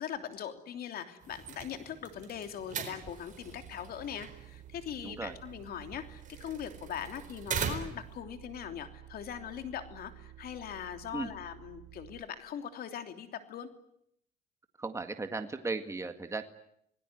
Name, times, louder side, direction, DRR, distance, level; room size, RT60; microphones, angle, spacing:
voice 1, 0.0-13.7, left 9 dB, 65° left, 7 dB, 3.1 m, -41 dB
sound 1, 1.2-8.2, right 7 dB, 50° right, 4.2 m, -42 dB
sound 2, 3.6-12.2, right 15 dB, 65° right, 2.7 m, -53 dB
voice 2, 5.0-5.3 11.1-11.3 14.8-16.4, right 3 dB, 15° right, 7 dB, 1.9 m, -36 dB
27.0 x 19.5 x 9.6 m, 0.73 s
cardioid pair, 110°, 17 cm